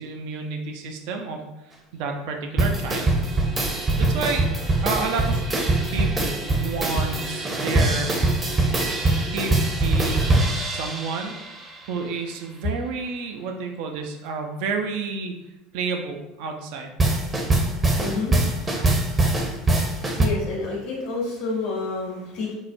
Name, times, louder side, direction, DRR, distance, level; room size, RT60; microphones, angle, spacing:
voice 1, 0.0-1.4 1.9-3.2 4.0-4.5 4.8-5.4 5.9-8.1 9.2-11.4 11.9-15.3 15.7-16.9, right 4 dB, 65° right, 3 dB, 0.4 m, -30 dB
sound 1, 2.6-11.7 17.0-20.3, right 2 dB, 25° right, 0.6 m, -23 dB
voice 2, 17.6-22.5, left 3 dB, 60° left, -4 dB, 0.9 m, -31 dB
4.6 x 2.0 x 2.6 m, 0.96 s
hypercardioid pair, 80°, 0 cm